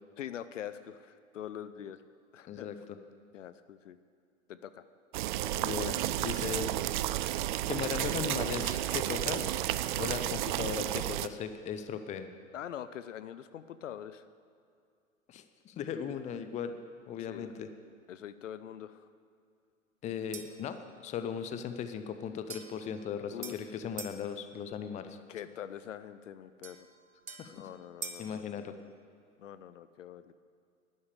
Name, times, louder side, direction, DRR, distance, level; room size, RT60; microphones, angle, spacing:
voice 1, 0.2-2.0 2.3-2.8 3.3-4.0 4.5-4.8 12.5-14.2 17.2-17.6 18.1-19.1 23.3-23.5 25.3-26.9 27.5-28.4 29.4-30.3, left 10 dB, 65° left, 13 dB, 0.7 m, -44 dB
sound 1, 5.1-11.3, right 14 dB, 40° right, 0.4 m, -32 dB
voice 2, 5.6-6.7 7.7-9.5 10.0-12.3 15.3-16.8 17.1-17.7 20.0-25.2 27.4-27.7 28.2-28.7, left 7 dB, 15° left, 9 dB, 0.7 m, -37 dB
sound 2, 20.3-20.7 22.5-24.2 26.6-28.3, right 5 dB, 85° right, 1.2 m, -46 dB
12.0 x 9.7 x 8.3 m, 2.3 s
figure-of-eight pair, 100°, 40 cm